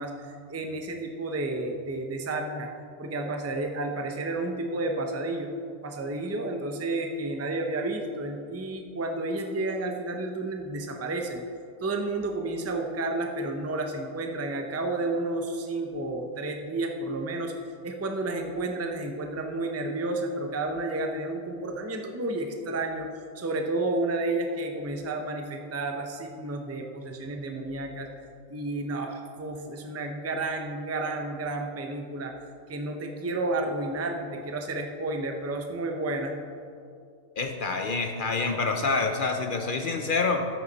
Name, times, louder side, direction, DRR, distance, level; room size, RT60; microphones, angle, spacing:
voice 1, 0.0-2.7 3.0-5.5 5.8-11.4 11.8-23.1 23.3-28.1 28.5-32.3 32.7-36.3, right 2 dB, 15° right, 3 dB, 0.5 m, -31 dB
voice 2, 37.4-40.5, left 4 dB, 50° left, 5 dB, 0.7 m, -27 dB
12.0 x 8.2 x 4.1 m, 2.4 s
omnidirectional pair, 1.4 m